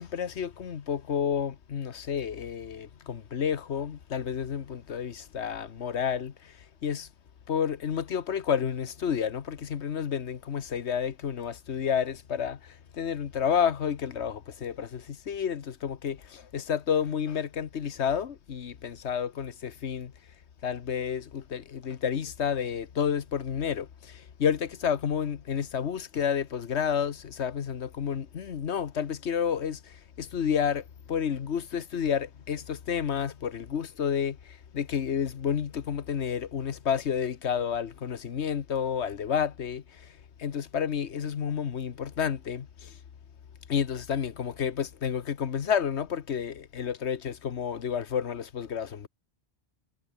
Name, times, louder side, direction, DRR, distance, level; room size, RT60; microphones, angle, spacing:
voice 1, 0.0-6.3 6.8-7.1 7.5-12.6 12.9-20.1 20.6-29.8 30.2-34.4 34.7-39.8 40.4-42.9 43.7-49.1, left 7 dB, 75° left, 1.4 m, -30 dB
omnidirectional pair, 1.1 m